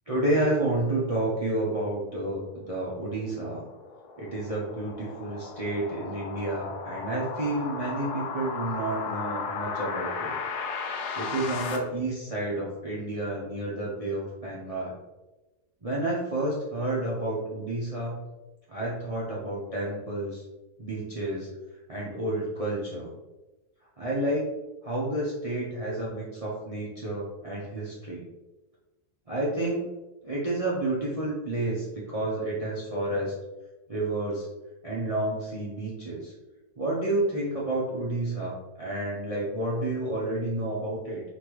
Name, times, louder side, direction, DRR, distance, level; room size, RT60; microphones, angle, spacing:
voice 1, 0.1-3.6 4.2-10.3 11.1-15.0 15.8-18.2 18.7-20.4 20.8-21.5 21.9-23.1 24.0-24.5 24.8-28.3 29.3-29.9 30.2-33.3 33.9-34.5 34.8-36.3 36.8-41.2, right 1 dB, 40° right, -5 dB, 0.5 m, -30 dB
sound 1, 3.1-11.8, left 5 dB, 85° left, 1.2 m, -35 dB
5.3 x 2.8 x 3.1 m, 1.1 s
omnidirectional pair, 1.7 m